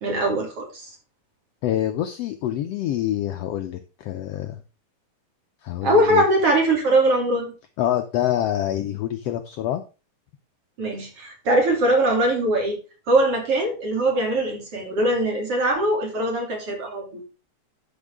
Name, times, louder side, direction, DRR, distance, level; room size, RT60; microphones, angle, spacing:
voice 1, 0.0-0.9 5.8-7.5 10.8-12.8 13.1-17.3, right 1 dB, 45° right, 1 dB, 3.7 m, -21 dB
voice 2, 1.6-4.6 5.6-6.2 7.8-9.8, left 12 dB, 85° left, 8 dB, 1.4 m, -26 dB
12.0 x 6.4 x 3.6 m, 0.32 s
omnidirectional pair, 3.7 m